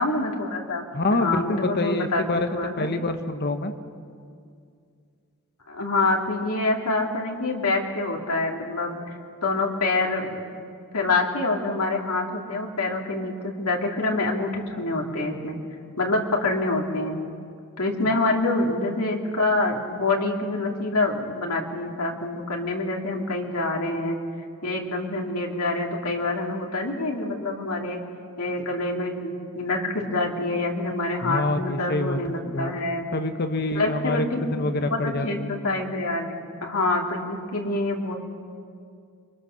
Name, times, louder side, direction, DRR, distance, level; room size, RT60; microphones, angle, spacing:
voice 1, 0.0-2.9 5.7-10.6 10.9-15.6 16.0-17.2 17.8-24.2 24.6-28.0 28.4-33.0 33.7-36.3 36.6-38.1, left 2 dB, 90° left, 0 dB, 2.9 m, -26 dB
voice 2, 0.9-3.7 31.2-32.2 32.4-32.7 33.1-35.5, left 2 dB, 45° left, 7 dB, 1.3 m, -26 dB
28.5 x 23.5 x 6.6 m, 2.3 s
head